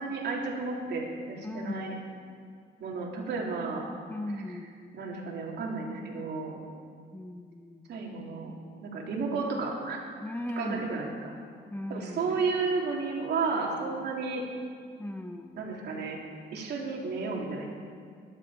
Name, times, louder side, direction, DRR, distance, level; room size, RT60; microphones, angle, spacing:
voice 1, 0.0-2.0 2.8-3.9 4.9-6.6 7.9-8.5 8.8-10.0 10.6-11.4 11.9-14.4 15.5-16.2 16.5-17.7, right 4 dB, 70° right, -1 dB, 2.9 m, -32 dB
voice 2, 1.4-1.7 4.1-4.9 7.1-7.9 10.2-11.1 11.7-12.5 15.0-15.7, left 1 dB, 10° left, 6 dB, 0.8 m, -38 dB
21.5 x 11.0 x 4.9 m, 2.1 s
cardioid pair, 125°, 18 cm